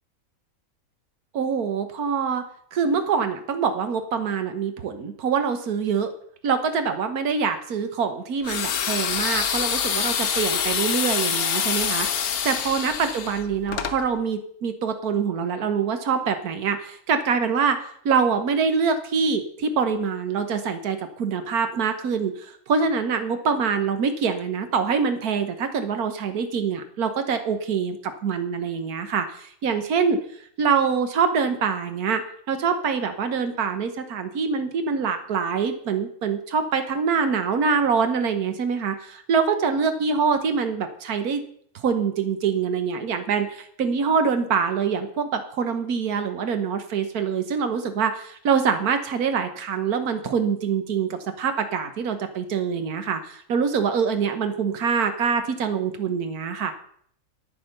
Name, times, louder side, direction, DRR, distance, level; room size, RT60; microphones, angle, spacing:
voice 1, 1.3-2.4 2.7-6.1 6.4-17.8 18.0-30.2 30.6-32.2 32.5-41.4 41.7-56.7, right 6 dB, 90° right, 8 dB, 1.6 m, -25 dB
sound 1, 8.4-14.0, left 8 dB, 75° left, 1.4 m, -26 dB
9.8 x 9.6 x 6.5 m, 0.63 s
omnidirectional pair, 1.5 m